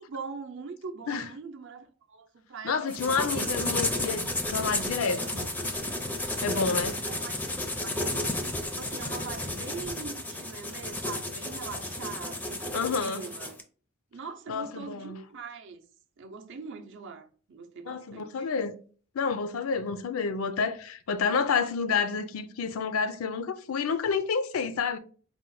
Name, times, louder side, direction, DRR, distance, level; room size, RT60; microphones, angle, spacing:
voice 1, 0.0-3.4 7.1-8.4 8.8-13.6 14.1-15.8 16.2-18.5, right 4 dB, 60° right, 0.5 m, -42 dB
voice 2, 2.6-5.5 6.4-7.0 12.7-13.2 14.5-15.2 17.9-18.7 19.1-25.0, left 5 dB, 75° left, 0.4 m, -29 dB
sound 1, 2.9-13.6, left 1 dB, 10° left, 0.4 m, -32 dB
4.4 x 2.1 x 3.8 m
head